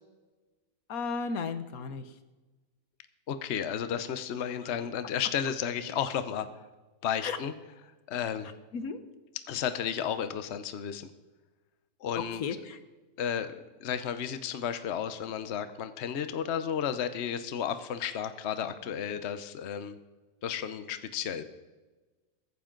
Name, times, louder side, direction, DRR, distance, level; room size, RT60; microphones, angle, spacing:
voice 1, 0.9-2.1 7.2-7.4 8.7-9.0 12.1-12.8, left 5 dB, 85° left, 10 dB, 1.5 m, -34 dB
voice 2, 3.3-6.5 7.0-7.5 8.1-8.5 9.5-11.1 12.0-12.4 13.2-13.5 13.8-20.0 20.4-21.4, left 8 dB, 55° left, 11 dB, 1.0 m, -33 dB
22.0 x 9.6 x 3.8 m, 1.2 s
omnidirectional pair, 1.5 m